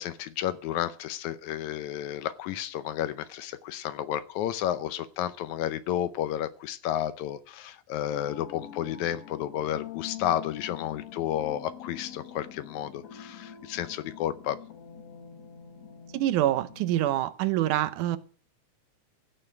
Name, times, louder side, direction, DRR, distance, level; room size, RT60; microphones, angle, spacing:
voice 1, 0.0-14.6, left 11 dB, 75° left, 2.0 m, -32 dB
sound 1, 8.1-17.2, left 10 dB, 60° left, 2.3 m, -45 dB
voice 2, 16.1-18.2, right 13 dB, 80° right, 2.2 m, -26 dB
15.5 x 6.3 x 7.9 m
omnidirectional pair, 3.6 m